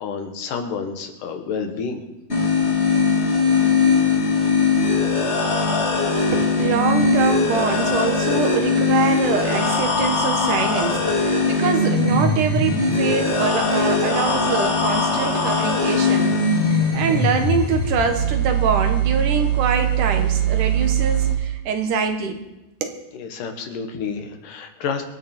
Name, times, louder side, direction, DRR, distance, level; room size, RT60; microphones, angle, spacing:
voice 1, 0.0-2.0 23.1-25.0, left 5 dB, 80° left, 5 dB, 3.1 m, -29 dB
sound 1, 2.3-21.3, left 2 dB, 25° left, 2.0 m, -20 dB
voice 2, 6.3-16.4 16.7-22.4 22.8-23.0, right 5 dB, 75° right, 5 dB, 3.1 m, -24 dB
26.0 x 9.6 x 4.5 m, 0.99 s
omnidirectional pair, 3.7 m